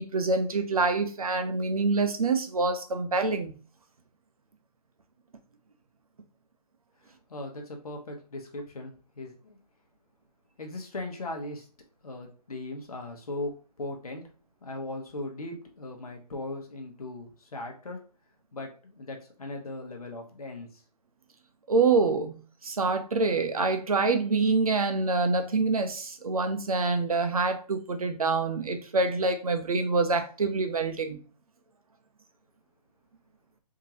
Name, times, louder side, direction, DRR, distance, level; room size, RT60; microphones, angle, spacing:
voice 1, 0.0-3.5 21.7-31.2, right 3 dB, 60° right, 7 dB, 0.7 m, -26 dB
voice 2, 7.0-9.6 10.6-11.7 12.0-14.3 14.6-18.0 18.5-20.8, left 2 dB, 60° left, 2 dB, 1.1 m, -38 dB
3.7 x 2.8 x 2.8 m, 0.37 s
hypercardioid pair, 175°, 21 cm